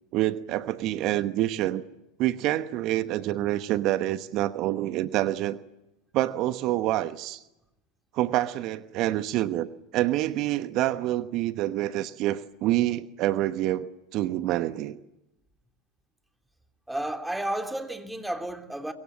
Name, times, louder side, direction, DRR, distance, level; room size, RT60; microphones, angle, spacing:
voice 1, 0.1-1.8 2.2-5.6 6.1-7.4 8.1-15.0, right 14 dB, 50° right, 1.1 m, -27 dB
voice 2, 16.9-18.9, right 1 dB, 5° right, 3.1 m, -32 dB
24.0 x 23.5 x 7.5 m
hypercardioid pair, 85°, 0 cm